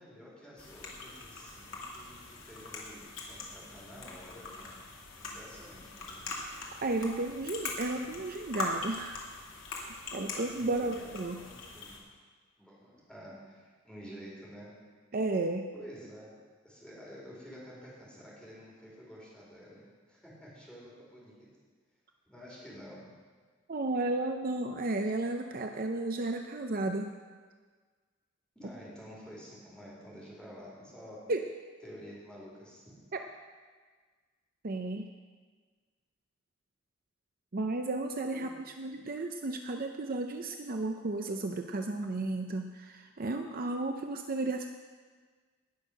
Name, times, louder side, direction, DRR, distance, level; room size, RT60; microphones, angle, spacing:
voice 1, 0.0-4.8 5.2-6.3 10.6-12.0 12.6-14.7 15.7-16.4 16.6-21.5 22.3-23.1 28.5-31.2 31.8-32.9 38.3-38.6, equal, 5° left, -6 dB, 4.3 m, -50 dB
sound 1, 0.6-12.0, left 3 dB, 80° left, 2.5 m, -42 dB
voice 2, 6.5-9.2 9.8-11.4 15.1-15.7 23.7-27.1 31.3-31.4 34.6-35.1 37.5-38.5 38.8-44.7, right 2 dB, 45° right, 5 dB, 0.6 m, -33 dB
19.0 x 6.4 x 6.4 m, 1.5 s
head